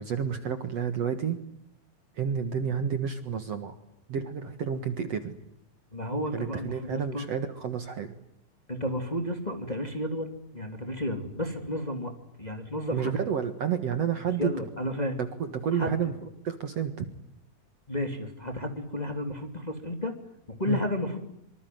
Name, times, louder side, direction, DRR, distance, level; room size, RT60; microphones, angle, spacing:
voice 1, 0.0-1.4 2.2-3.8 4.1-5.4 6.3-8.1 12.9-14.5 15.2-15.3 15.5-16.1 16.4-17.1 20.7-20.8, right 7 dB, 55° right, 9 dB, 2.3 m, -30 dB
voice 2, 5.9-7.3 8.7-12.1 12.4-13.1 14.4-15.2 15.7-15.9 17.9-20.1 20.6-21.2, left 1 dB, 15° left, 5 dB, 2.5 m, -32 dB
25.5 x 25.0 x 9.4 m, 0.77 s
omnidirectional pair, 4.1 m